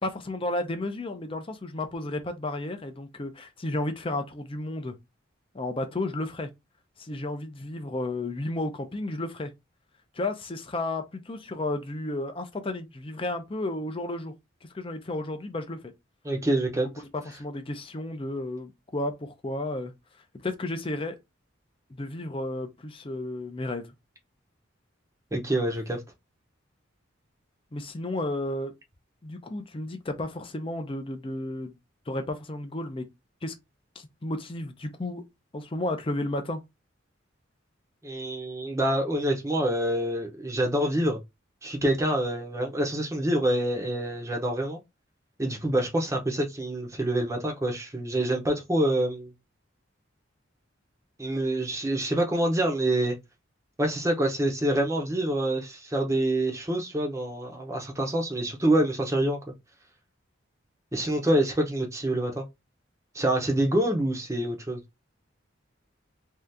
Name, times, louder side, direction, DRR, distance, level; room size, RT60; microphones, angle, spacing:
voice 1, 0.0-5.0 5.5-6.5 7.0-9.5 10.1-14.3 14.6-15.9 17.1-19.9 20.4-21.2 21.9-23.9 27.7-28.7 29.2-31.8 32.1-33.1 33.4-33.5 34.0-35.2 35.5-36.6, left 2 dB, 25° left, 0.5 m, -32 dB
voice 2, 16.2-16.9 25.3-26.0 38.0-41.2 41.6-44.8 45.4-49.3 51.2-53.1 53.8-59.4 60.9-62.4 63.1-64.8, right 1 dB, 15° right, 0.7 m, -26 dB
2.7 x 2.4 x 3.4 m
head